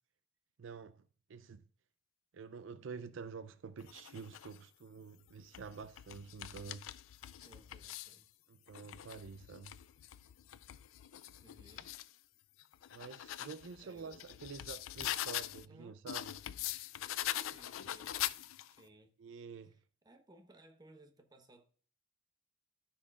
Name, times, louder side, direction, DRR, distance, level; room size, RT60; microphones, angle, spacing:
voice 1, 0.6-1.0 1.3-1.6 2.3-6.8 8.5-9.7 12.9-16.4 19.2-19.8, right 5 dB, 70° right, 0.4 m, -48 dB
sound 1, 3.8-4.6 5.3-8.2 8.7-12.1 12.6-15.7 16.1-18.8, left 13 dB, 90° left, 0.3 m, -43 dB
voice 2, 7.3-8.3 11.4-11.9 13.8-14.2 15.6-16.0 17.4-18.2 18.6-19.1 20.0-21.6, right 1 dB, 20° right, 1.0 m, -61 dB
13.5 x 5.7 x 2.4 m
head